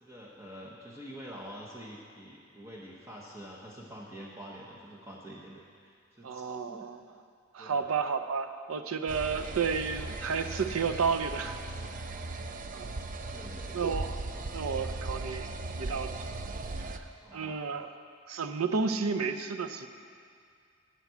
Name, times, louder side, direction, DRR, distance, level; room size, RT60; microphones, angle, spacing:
voice 1, 0.0-6.9 7.6-7.9 13.3-13.8 17.2-17.6, equal, 15° right, -5 dB, 0.8 m, -47 dB
voice 2, 6.2-7.0 7.5-11.6 12.7-12.9 13.7-14.2 14.5-16.3 16.9-17.0 17.3-17.9 18.3-19.9, right 5 dB, 90° right, 9 dB, 0.6 m, -32 dB
sound 1, 9.1-17.0, right 2 dB, 40° right, 0.5 m, -38 dB
9.0 x 7.2 x 8.0 m, 2.3 s
head